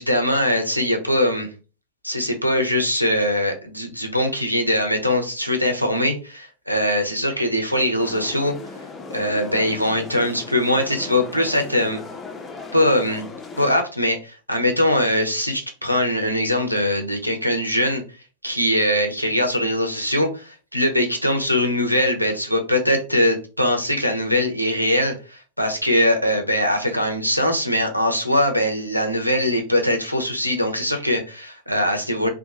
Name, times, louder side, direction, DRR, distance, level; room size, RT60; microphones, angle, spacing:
voice 1, 0.0-1.5 2.0-8.6 9.1-12.0 12.7-13.3 13.6-18.0 18.4-32.3, left 1 dB, 90° left, 4 dB, 0.5 m, -21 dB
sound 1, 8.0-13.7, left 4 dB, 15° left, 0.5 m, -37 dB
2.7 x 2.2 x 2.5 m, 0.34 s
figure-of-eight pair, 90°, 0 cm